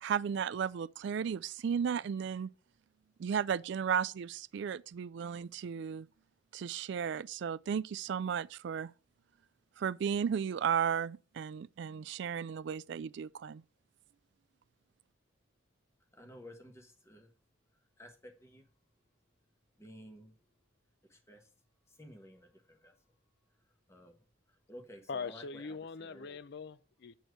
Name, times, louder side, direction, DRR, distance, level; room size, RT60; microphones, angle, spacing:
voice 1, 0.0-2.5 3.2-6.1 6.5-8.9 9.8-13.6, right 7 dB, 60° right, 0.3 m, -34 dB
voice 2, 16.2-17.3 18.0-18.6 19.8-20.3 21.1-21.4 22.0-22.9 23.9-24.1 24.7-25.4 26.1-26.4, equal, 15° left, 1.3 m, -53 dB
voice 3, 25.1-27.1, left 5 dB, 60° left, 0.5 m, -42 dB
8.1 x 4.4 x 6.1 m
head